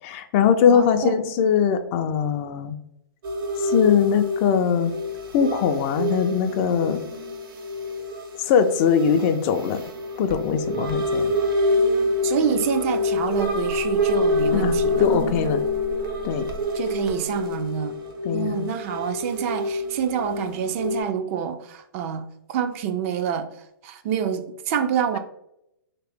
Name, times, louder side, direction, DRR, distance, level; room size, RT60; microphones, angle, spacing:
voice 1, 0.0-2.8 3.6-4.9 5.3-7.0 8.4-9.8 10.2-11.3 14.5-15.6 16.2-16.5 18.2-18.7, left 7 dB, 35° left, 0.3 m, -21 dB
voice 2, 0.7-1.2 12.2-15.1 16.7-18.0 18.3-23.5 23.8-25.2, right 8 dB, 40° right, 0.4 m, -27 dB
sound 1, 3.2-21.0, left 1 dB, 65° right, 0.9 m, -27 dB
3.1 x 2.9 x 3.3 m
hypercardioid pair, 135°, 12 cm